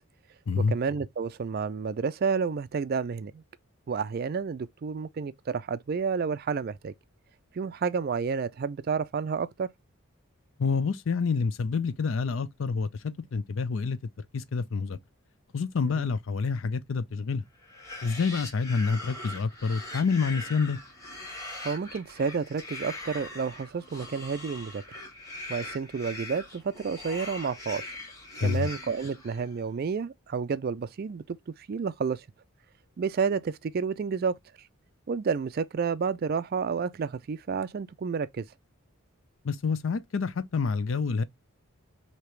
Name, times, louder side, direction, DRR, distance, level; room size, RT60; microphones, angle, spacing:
voice 1, 0.6-3.4 3.9-6.9 7.5-9.7 15.8-16.1 21.6-24.8 25.5-27.9 28.4-32.2 33.0-34.4 35.1-38.5, right 5 dB, 45° right, 0.3 m, -30 dB
voice 2, 10.6-14.0 14.3-15.0 15.5-17.4 18.0-20.8 28.4-28.7 39.4-41.2, left 5 dB, 65° left, 0.5 m, -28 dB
sound 1, 17.6-29.6, left 2 dB, 15° left, 1.9 m, -41 dB
4.6 x 2.9 x 3.1 m
head